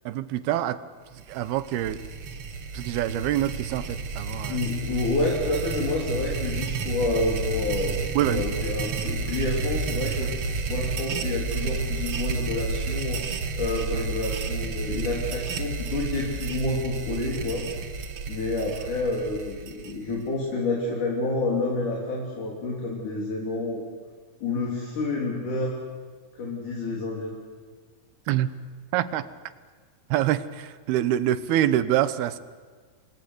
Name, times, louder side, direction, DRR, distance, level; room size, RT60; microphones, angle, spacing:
voice 1, 0.1-0.8 1.3-2.0 2.7-4.6 8.1-8.4 28.3-28.5 28.9-29.2 30.1-32.4, right 12 dB, 75° right, 13 dB, 2.8 m, -25 dB
sound 1, 1.2-20.3, right 4 dB, 60° right, 1.5 m, -31 dB
voice 2, 4.5-8.0 8.2-10.3 10.7-13.2 13.6-17.6 18.3-23.8 24.4-25.8 26.4-27.3, left 2 dB, 50° left, -2 dB, 4.8 m, -28 dB
28.5 x 22.0 x 8.1 m, 1.5 s
omnidirectional pair, 4.6 m